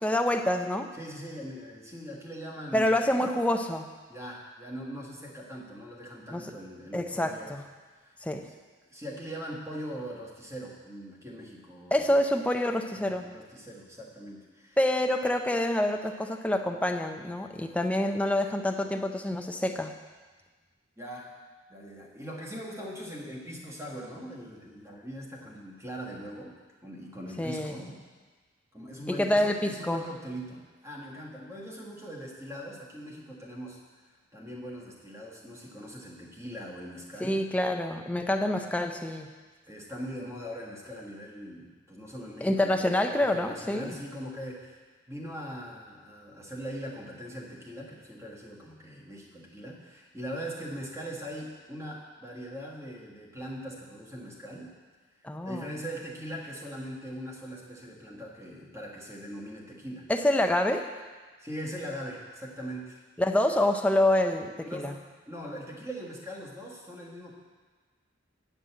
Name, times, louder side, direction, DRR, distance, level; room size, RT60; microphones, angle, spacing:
voice 1, 0.0-0.9 2.7-3.9 6.3-6.4 6.9-7.6 8.2-8.5 11.9-13.2 14.8-19.9 27.4-27.7 29.1-30.0 37.2-39.3 42.4-44.0 55.2-55.7 60.1-60.9 63.2-64.9, left 1 dB, 5° left, 5 dB, 0.4 m, -27 dB
voice 2, 1.0-3.1 4.1-7.5 8.0-8.5 8.9-12.2 12.9-14.8 21.0-21.3 21.7-28.0 28.7-37.4 39.7-54.8 55.4-60.1 61.4-63.0 64.6-65.0 65.3-67.3, equal, 15° right, -3 dB, 1.5 m, -41 dB
8.7 x 5.3 x 7.9 m, 1.4 s
head